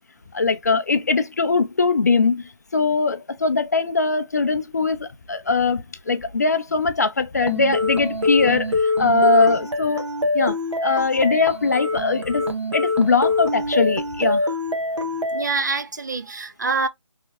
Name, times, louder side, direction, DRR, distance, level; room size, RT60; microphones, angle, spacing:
voice 1, 0.3-10.1 10.3-14.4, left 3 dB, 35° left, 0.4 m, -21 dB
sound 1, 7.4-15.4, left 2 dB, 65° right, 1.3 m, -24 dB
voice 2, 15.3-16.9, right 4 dB, 35° right, 0.4 m, -25 dB
5.2 x 3.3 x 2.2 m
figure-of-eight pair, 155°, 16 cm